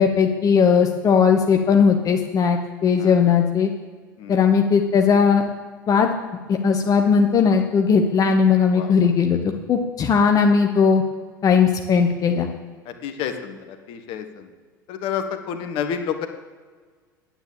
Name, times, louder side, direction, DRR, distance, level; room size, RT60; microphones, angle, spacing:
voice 1, 0.0-3.7 4.3-5.4 5.9-6.1 6.5-9.4 9.7-11.0 11.4-12.5, left 6 dB, 30° left, 4 dB, 1.1 m, -18 dB
voice 2, 13.0-14.5 14.9-16.3, left 8 dB, 50° left, 8 dB, 1.4 m, -29 dB
9.7 x 9.3 x 7.4 m, 1.5 s
figure-of-eight pair, 70°, 11 cm